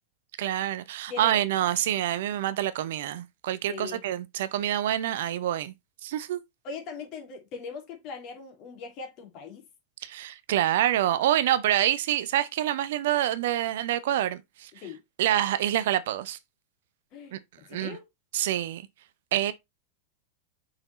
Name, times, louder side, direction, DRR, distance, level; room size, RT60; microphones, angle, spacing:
voice 1, 0.4-5.7 6.0-6.4 10.0-14.7 15.2-16.4 17.3-17.4 17.7-18.0 18.3-18.8 19.3-19.5, right 12 dB, 55° right, 0.6 m, -26 dB
voice 2, 1.1-1.4 3.7-4.0 6.6-9.6 14.7-15.0 15.3-15.4 17.1-17.4 17.6-18.1, left 5 dB, 40° left, 2.7 m, -40 dB
5.7 x 5.0 x 4.0 m
figure-of-eight pair, 90°, 0 cm